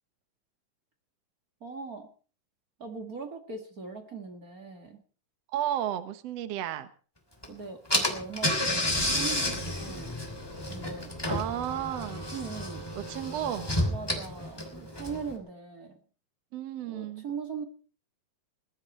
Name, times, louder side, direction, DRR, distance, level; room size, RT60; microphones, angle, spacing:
voice 1, 1.6-2.1 2.8-5.0 7.5-10.1 10.7-11.1 12.3-13.0 13.9-15.9 16.8-17.6, right 5 dB, 35° right, 5 dB, 1.7 m, -40 dB
voice 2, 5.5-6.9 11.3-12.3 13.1-13.7 16.5-17.2, right 11 dB, 60° right, 10 dB, 1.9 m, -33 dB
Car / Engine, 7.4-7.5 7.9-15.3, left 1 dB, 5° left, 2.7 m, -31 dB
20.5 x 12.5 x 4.4 m, 0.40 s
omnidirectional pair, 3.9 m